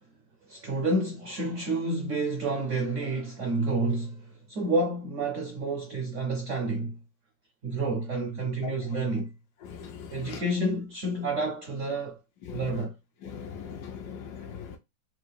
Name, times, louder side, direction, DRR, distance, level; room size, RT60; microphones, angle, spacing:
voice 1, 0.5-7.0 7.6-9.3 10.1-12.2 12.5-13.0, right 2 dB, 75° right, 0.7 m, -29 dB
voice 2, 9.7-10.4 12.5-12.6 13.2-14.8, left 7 dB, 70° left, 1.0 m, -40 dB
3.6 x 2.4 x 3.2 m
omnidirectional pair, 2.0 m